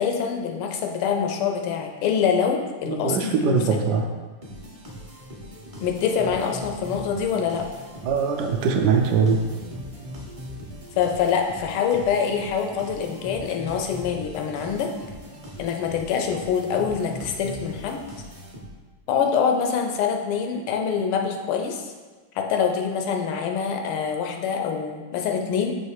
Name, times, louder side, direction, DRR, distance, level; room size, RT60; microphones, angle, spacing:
voice 1, 0.0-3.6 5.8-7.7 11.0-14.9 15.6-18.0 19.1-21.9 22.3-25.7, left 7 dB, 90° left, 3 dB, 1.6 m, -25 dB
voice 2, 2.8-4.0 8.0-9.4, right 5 dB, 70° right, 4 dB, 1.0 m, -22 dB
sound 1, 4.4-19.0, equal, 45° right, 0.4 m, -40 dB
6.4 x 3.1 x 4.7 m, 1.4 s
omnidirectional pair, 2.3 m